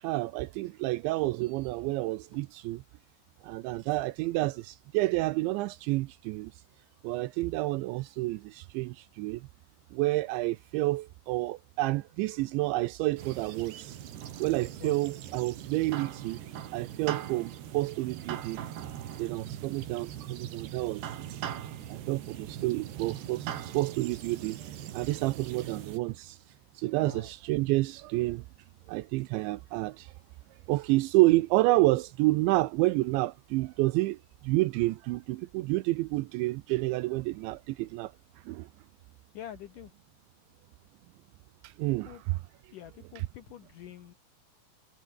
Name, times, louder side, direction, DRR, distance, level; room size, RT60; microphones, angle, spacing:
voice 1, 0.0-2.8 3.4-6.5 7.0-9.5 9.9-14.0 14.4-16.4 16.7-18.7 19.2-21.4 21.9-24.6 24.9-26.4 26.8-28.4 28.9-30.1 30.7-34.2 34.4-38.1 38.5-38.7 41.6-42.4 43.2-43.3, right 19 dB, 80° right, 2.9 m, -29 dB
sound 1, 13.2-26.0, right 10 dB, 65° right, 4.1 m, -41 dB
voice 2, 39.3-39.9 42.1-42.2 42.7-44.1, left 11 dB, 85° left, 1.9 m, -45 dB
omnidirectional pair, 5.4 m